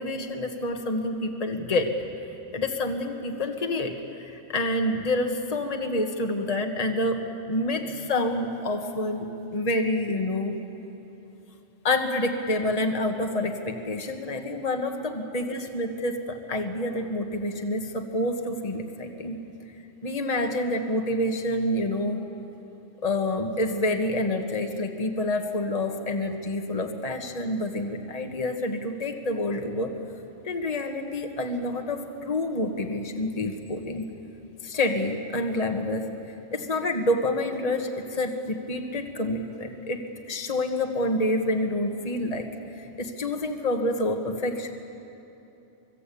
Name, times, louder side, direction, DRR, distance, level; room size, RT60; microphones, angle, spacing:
voice 1, 0.0-1.9 2.5-3.9 4.2-7.2 7.5-10.5 11.8-19.4 20.0-22.2 23.0-29.9 30.4-34.0 34.6-36.1 36.5-40.0 40.3-42.5 42.7-44.7, left 1 dB, 30° left, 4 dB, 1.6 m, -28 dB
25.0 x 23.0 x 8.5 m, 3.0 s
omnidirectional pair, 1.3 m